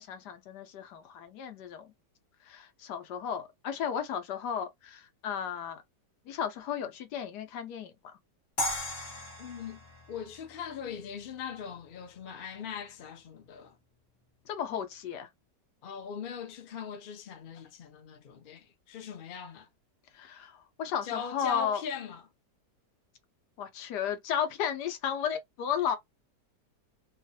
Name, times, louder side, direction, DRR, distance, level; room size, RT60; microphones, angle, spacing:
voice 1, 0.0-1.9 2.5-5.8 6.3-7.9 14.5-15.3 20.1-21.8 23.6-26.0, left 8 dB, 75° left, 1.2 m, -34 dB
sound 1, 8.6-11.6, left 1 dB, 40° left, 1.3 m, -37 dB
voice 2, 9.4-13.8 15.8-19.7 21.0-22.2, left 7 dB, 55° left, 0.5 m, -40 dB
3.0 x 2.4 x 2.7 m
omnidirectional pair, 1.9 m